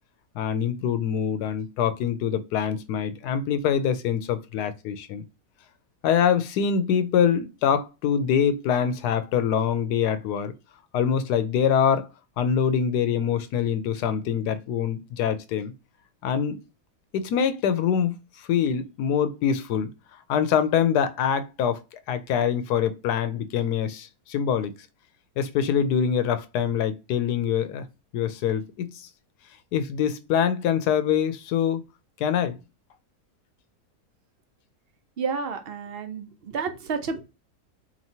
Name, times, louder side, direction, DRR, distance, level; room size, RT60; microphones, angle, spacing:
voice 1, 0.3-5.2 6.0-10.5 10.9-12.1 12.4-15.7 16.2-16.6 17.1-19.9 20.3-24.7 25.4-27.9 28.1-29.1 29.7-31.8 32.2-32.6, left 8 dB, 90° left, 1.2 m, -24 dB
voice 2, 35.2-37.2, right 5 dB, 60° right, 0.6 m, -30 dB
4.5 x 3.0 x 2.7 m
omnidirectional pair, 1.6 m